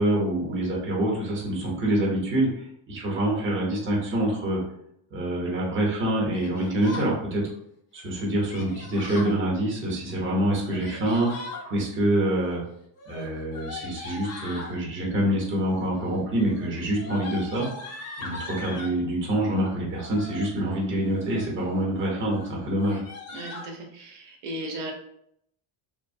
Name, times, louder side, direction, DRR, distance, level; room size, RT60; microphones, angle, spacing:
voice 1, 0.0-2.5 2.9-4.6 5.1-7.4 7.9-11.3 11.6-12.6 13.1-17.7 18.2-23.0, right 1 dB, 25° right, -3 dB, 0.7 m, -26 dB
Yell, 6.3-7.1 8.5-9.4 10.5-11.6 12.9-14.7 15.6-16.0 16.3-19.0 19.9-20.5 21.0-21.6 21.9-22.1 22.3-22.5 22.8-23.7, left 3 dB, 35° left, 0.4 m, -40 dB
voice 2, 23.3-24.9, right 1 dB, 80° right, 1 dB, 0.8 m, -36 dB
2.9 x 2.0 x 2.6 m, 0.72 s
cardioid pair, 160°, 50 cm